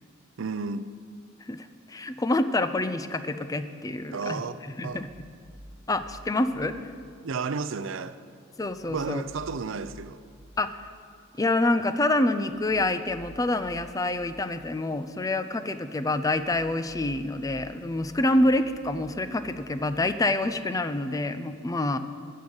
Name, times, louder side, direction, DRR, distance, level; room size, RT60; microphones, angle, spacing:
voice 1, 0.4-0.9 4.1-5.1 7.2-8.2 8.9-10.2, right 4 dB, 85° right, 0.5 m, -32 dB
voice 2, 1.4-4.4 4.8-5.1 5.9-6.7 8.6-9.2 10.6-10.9 11.4-22.0, left 2 dB, 20° left, 0.5 m, -27 dB
sound 1, 4.8-6.7 8.6-10.5 12.4-14.3 16.2-20.0, equal, 80° left, 2.6 m, -51 dB
14.0 x 5.6 x 8.8 m
head